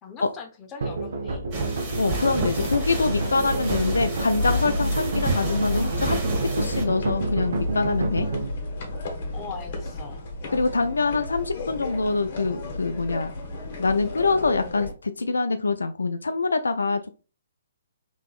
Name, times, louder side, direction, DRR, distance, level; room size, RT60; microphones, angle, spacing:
voice 1, 0.0-1.5 9.3-10.2, left 5 dB, 20° left, 3 dB, 0.8 m, -40 dB
sound 1, 0.8-8.5, right 3 dB, 60° right, 0.8 m, -30 dB
sound 2, 1.5-6.8, right 2 dB, 30° right, 1.3 m, -31 dB
voice 2, 2.0-6.2 6.6-8.3 10.5-13.3 13.8-17.2, left 3 dB, 80° left, 9 dB, 0.3 m, -25 dB
sound 3, 2.6-14.9, left 1 dB, 45° left, 1.0 m, -32 dB
3.5 x 2.9 x 2.4 m, 0.34 s
figure-of-eight pair, 130°, 0 cm